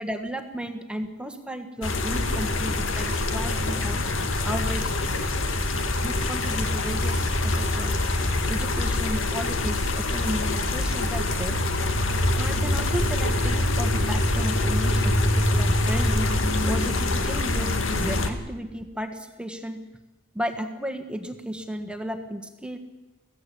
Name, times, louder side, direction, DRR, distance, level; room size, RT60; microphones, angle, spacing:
voice 1, 0.0-4.0 4.4-5.0 6.0-8.0 8.5-11.6 12.3-16.3 16.6-19.8 20.3-22.8, equal, 5° right, 7 dB, 1.5 m, -34 dB
sound 1, 1.8-18.3, left 2 dB, 70° left, 2.1 m, -24 dB
24.5 x 16.5 x 8.6 m, 1.1 s
head